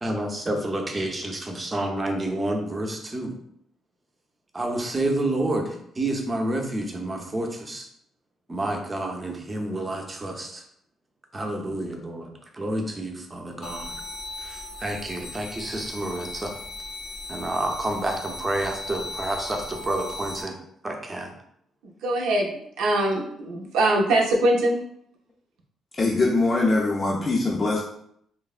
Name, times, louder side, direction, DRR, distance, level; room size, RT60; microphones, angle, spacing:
voice 1, 0.0-3.3 4.5-7.9 8.5-10.6 11.3-13.9 14.4-16.5 17.3-20.6 20.8-21.3, right 1 dB, 20° right, 2 dB, 0.5 m, -29 dB
sound 1, 13.6-20.4, left 2 dB, 80° left, 0.7 m, -37 dB
voice 2, 22.0-24.8, right 1 dB, 85° right, 0 dB, 0.5 m, -22 dB
voice 3, 26.0-27.8, left 2 dB, 30° left, -4 dB, 0.4 m, -22 dB
3.2 x 2.0 x 2.4 m, 0.70 s
cardioid pair, 100°, 0 cm